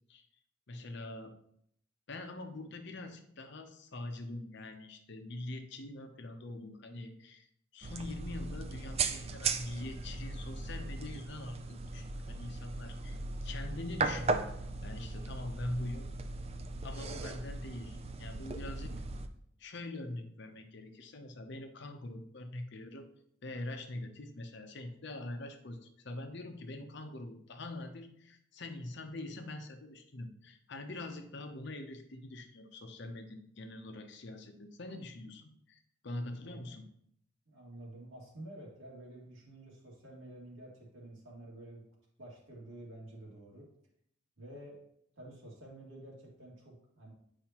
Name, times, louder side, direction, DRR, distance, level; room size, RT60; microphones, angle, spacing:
voice 1, 0.7-1.3 2.1-7.5 7.7-14.5 14.8-16.1 16.8-19.0 19.6-23.1 23.4-36.8, left 2 dB, 60° left, 5 dB, 0.8 m, -44 dB
sound 1, 7.8-19.3, right 3 dB, 30° right, 0.4 m, -37 dB
voice 2, 18.7-19.3 36.4-36.6 37.5-41.8 42.2-43.7 44.4-44.8 45.2-47.1, right 1 dB, 80° right, -3 dB, 2.2 m, -50 dB
8.7 x 4.9 x 2.9 m, 0.71 s
head